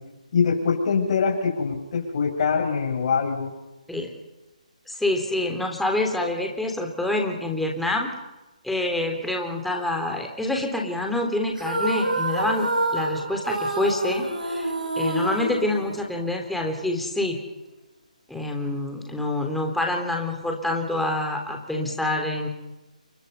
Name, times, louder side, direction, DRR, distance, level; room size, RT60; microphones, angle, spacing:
voice 1, 0.3-3.5, left 5 dB, 45° left, 2 dB, 7.6 m, -23 dB
voice 2, 4.9-8.1 8.6-12.7 12.9-17.4 18.3-22.5, left 2 dB, ahead, 1 dB, 3.5 m, -27 dB
sound 1, 11.6-16.4, right 1 dB, 85° right, 6.7 m, -27 dB
29.5 x 23.0 x 5.7 m, 1.0 s
figure-of-eight pair, 145°, 4 cm